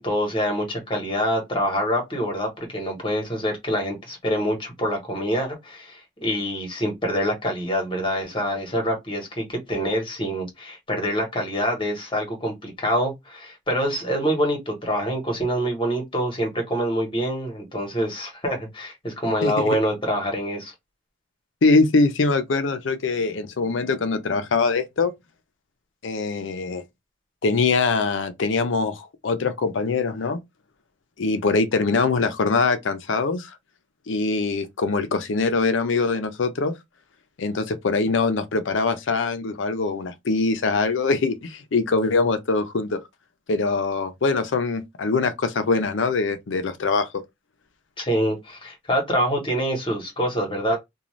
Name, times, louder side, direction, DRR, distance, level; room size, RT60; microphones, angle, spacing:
voice 1, 0.0-20.7 48.0-50.8, equal, 25° left, 1.1 m, -25 dB
voice 2, 19.4-19.8 21.6-25.1 26.0-26.8 27.4-30.4 31.2-33.5 34.1-36.8 37.4-43.0 43.5-47.2, left 3 dB, 75° left, 0.5 m, -23 dB
2.5 x 2.3 x 3.1 m
head